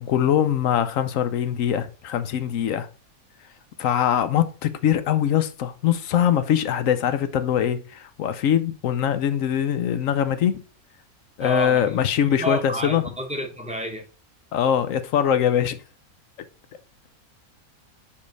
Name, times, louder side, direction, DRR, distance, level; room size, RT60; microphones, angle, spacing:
voice 1, 0.0-2.9 3.8-10.6 11.4-13.0 14.5-15.8, left 9 dB, 65° left, 0.9 m, -22 dB
voice 2, 11.4-14.0, right 1 dB, 5° right, 0.8 m, -30 dB
5.3 x 5.1 x 4.0 m
omnidirectional pair, 1.6 m